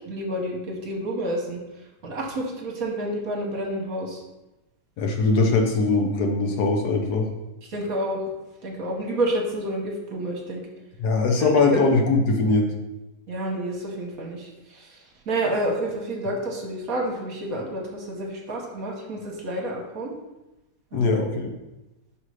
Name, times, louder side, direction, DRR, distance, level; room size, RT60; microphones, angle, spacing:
voice 1, 0.1-1.6 2.0-4.2 7.7-8.2 8.6-10.6 11.4-11.6 13.3-14.5 14.8-14.9 15.3-20.1 20.9-21.1, right 1 dB, 55° right, 0 dB, 1.4 m, -29 dB
voice 2, 5.0-7.3 11.0-12.7 20.9-21.5, left 3 dB, 65° left, 2 dB, 1.3 m, -21 dB
5.7 x 5.4 x 4.8 m, 0.99 s
omnidirectional pair, 2.0 m